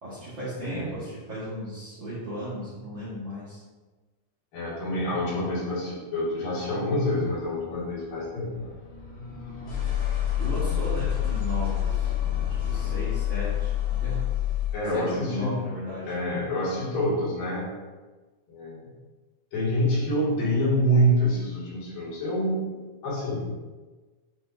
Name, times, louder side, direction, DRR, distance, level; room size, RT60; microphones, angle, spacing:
voice 1, 0.0-3.6 10.4-12.1 12.5-14.3 14.9-16.1, equal, 45° right, -11 dB, 1.9 m, -35 dB
voice 2, 4.5-8.7 14.7-15.6 16.1-17.7 18.5-18.8 19.5-23.5, equal, 90° left, -8 dB, 4.2 m, -26 dB
sound 1, 7.1-14.9, left 11 dB, 45° left, 1.8 m, -29 dB
11.5 x 4.3 x 2.7 m, 1.3 s
omnidirectional pair, 3.9 m